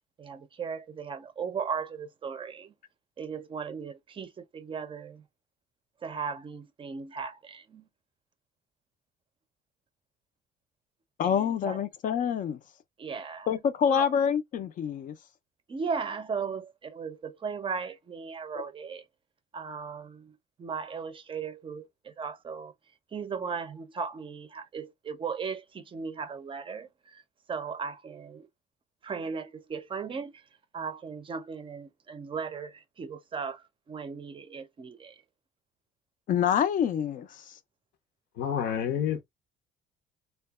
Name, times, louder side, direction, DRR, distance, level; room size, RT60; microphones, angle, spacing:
voice 1, 0.2-2.7 3.2-5.2 6.0-7.9 11.2-11.8 13.0-13.5 13.9-14.1 15.7-19.0 19.5-22.7 23.1-27.2 27.5-28.5 29.0-30.3 30.7-35.2, right 5 dB, 30° right, 0.5 m, -37 dB
voice 2, 11.2-12.6 13.5-15.1 36.3-37.4, left 8 dB, 50° left, 0.4 m, -26 dB
voice 3, 38.4-39.2, left 9 dB, 80° left, 0.8 m, -28 dB
2.7 x 2.2 x 2.2 m
cardioid pair, 110°, 17 cm